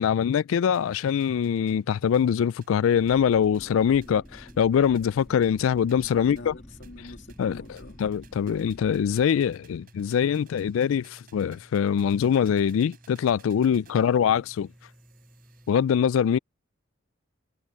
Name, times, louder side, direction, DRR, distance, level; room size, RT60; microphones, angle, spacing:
voice 1, 0.0-6.5 7.4-14.7 15.7-16.4, left 8 dB, 80° left, 0.3 m, -23 dB
sound 1, 0.7-15.9, equal, ahead, 6.7 m, -55 dB
sound 2, 0.7-15.7, right 8 dB, 45° right, 5.9 m, -61 dB
sound 3, 2.9-9.2, equal, 20° left, 1.4 m, -48 dB
voice 2, 6.1-8.0 13.9-14.4, left 2 dB, 60° left, 2.0 m, -45 dB
head